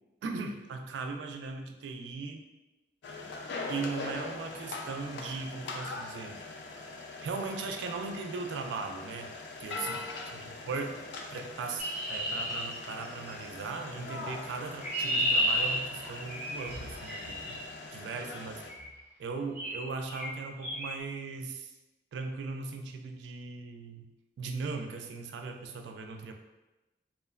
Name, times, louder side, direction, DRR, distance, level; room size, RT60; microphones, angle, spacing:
voice 1, 0.2-2.4 3.7-6.4 7.2-9.3 9.6-11.0 11.3-17.6 17.9-18.6 19.2-21.7 22.1-24.1 24.4-26.3, right 4 dB, 90° right, 5 dB, 0.3 m, -38 dB
sound 1, 3.0-18.7, left 3 dB, 85° left, 0.3 m, -42 dB
Chirp tweet, 11.8-13.4 14.4-17.6 18.7-19.0 19.5-19.8 20.1-20.3 20.6-20.9, equal, 10° right, 0.5 m, -32 dB
3.0 x 2.0 x 2.2 m, 1.0 s
head